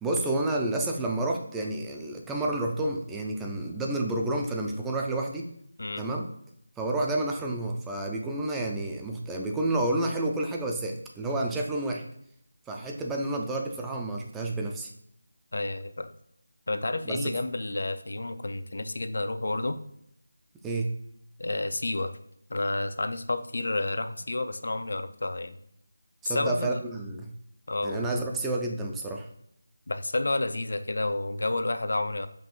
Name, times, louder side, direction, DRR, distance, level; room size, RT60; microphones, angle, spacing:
voice 1, 0.0-5.5 6.0-6.3 6.8-12.0 12.7-14.9 17.1-17.3 20.6-20.9 26.2-27.3 27.8-29.3, right 2 dB, 5° right, 0 dB, 0.3 m, -30 dB
voice 2, 15.5-16.1 16.7-19.8 21.4-22.1 22.5-25.6 26.2-26.8 27.7-28.1 29.9-32.3, left 2 dB, 70° left, 10 dB, 0.3 m, -30 dB
5.2 x 2.6 x 2.9 m, 0.71 s
figure-of-eight pair, 165°, 0 cm